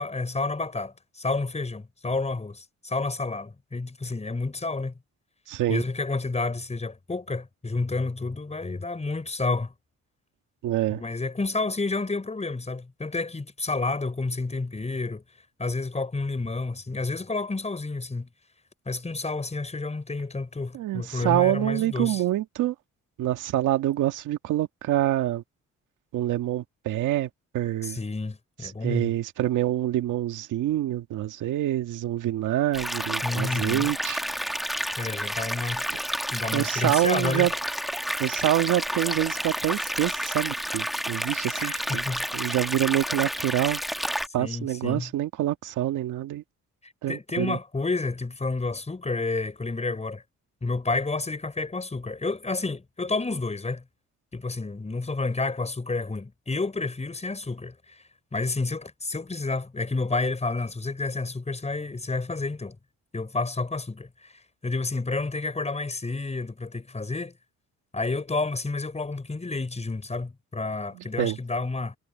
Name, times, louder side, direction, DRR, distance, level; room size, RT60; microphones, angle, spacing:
voice 1, 0.0-4.9 5.7-9.7 10.9-15.2 15.6-18.3 18.9-22.2 27.8-29.1 33.2-33.9 35.0-35.8 36.3-37.5 41.6-42.2 44.4-45.1 46.8-50.2 50.6-53.8 54.3-58.0 58.3-62.8 63.1-67.3 67.9-72.0, left 3 dB, 20° left, 6.1 m, -30 dB
voice 2, 5.5-5.8 10.6-11.0 20.7-22.7 23.2-25.4 26.1-28.0 28.6-34.2 36.5-37.5 38.2-42.0 42.3-43.8 44.3-46.4 47.0-47.6 70.9-71.4, right 13 dB, 85° right, 2.0 m, -26 dB
sound 1, 32.7-44.3, equal, ahead, 1.5 m, -30 dB
cardioid pair, 90°, 30 cm